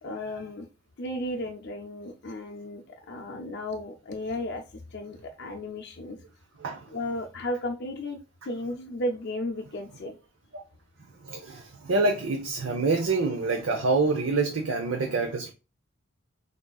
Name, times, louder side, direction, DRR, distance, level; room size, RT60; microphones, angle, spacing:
voice 1, 0.0-0.7 1.0-6.2 6.9-8.2 8.4-10.2, left 1 dB, 55° left, 0.5 m, -34 dB
voice 2, 11.2-15.5, right 3 dB, 85° right, 0.7 m, -26 dB
6.2 x 2.6 x 2.3 m
head